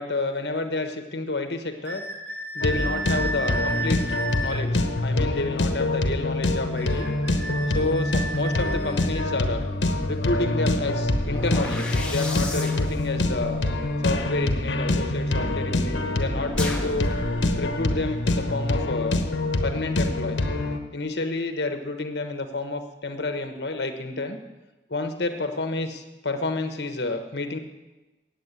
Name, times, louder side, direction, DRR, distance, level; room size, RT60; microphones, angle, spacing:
voice 1, 0.0-2.0 2.5-4.0 4.4-7.1 7.7-9.7 10.1-13.6 14.0-17.1 17.6-19.2 19.6-20.4 20.9-24.4 24.9-27.6, left 2 dB, 70° left, 6 dB, 1.2 m, -29 dB
sound 1, 1.8-4.6 6.8-9.3, right 1 dB, 85° right, 4.2 m, -33 dB
sound 2, 2.6-20.8, left 2 dB, 90° left, 1.1 m, -25 dB
sound 3, 11.0-15.1 16.5-17.9, left 1 dB, 5° left, 1.5 m, -35 dB
9.6 x 8.3 x 8.3 m, 1.1 s
head